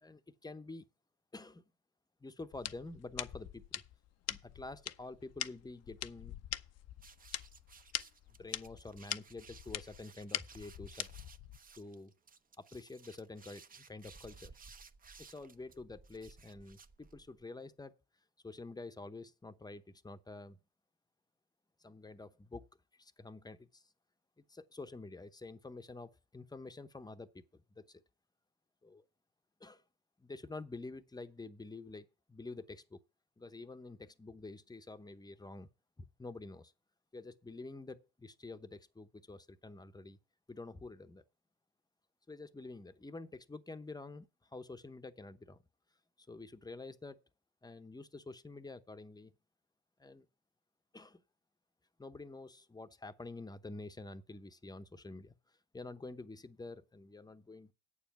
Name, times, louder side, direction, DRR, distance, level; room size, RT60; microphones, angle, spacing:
voice 1, 0.0-0.9 1.3-1.6 2.2-3.8 4.3-6.4 8.4-11.1 11.8-12.1 12.6-14.5 15.3-17.9 18.4-20.6 21.8-22.7 23.0-23.9 24.5-28.0 28.8-29.0 29.6-29.8 30.2-33.0 33.4-35.7 36.2-36.7 37.1-40.2 40.5-41.2 42.3-45.6 46.2-47.2 47.6-49.3 50.0-50.3 50.9-51.2 52.0-55.3 55.7-57.7, left 3 dB, 10° left, 0.8 m, -48 dB
sound 1, 2.5-11.6, left 12 dB, 55° left, 0.6 m, -43 dB
sound 2, 7.0-17.4, right 5 dB, 25° right, 0.8 m, -58 dB
8.4 x 7.1 x 5.8 m
supercardioid pair, 75°, 31 cm